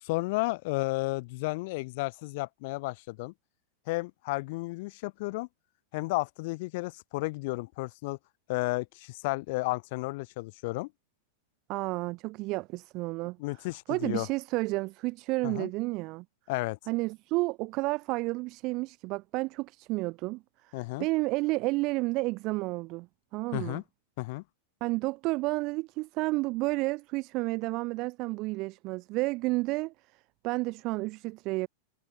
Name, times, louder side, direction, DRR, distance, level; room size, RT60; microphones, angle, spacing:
voice 1, 0.0-3.3 3.9-5.5 5.9-8.2 8.5-10.9 13.4-14.3 15.4-15.7 16.5-16.8 20.7-21.1 23.5-23.8 24.2-24.4, left 24 dB, 50° left, 1.0 m, -32 dB
voice 2, 11.7-13.4 13.9-16.2 16.9-20.4 21.0-23.1 23.3-23.8 24.8-29.9 30.4-31.7, right 22 dB, 40° right, 0.3 m, -31 dB
figure-of-eight pair, 90°, 0 cm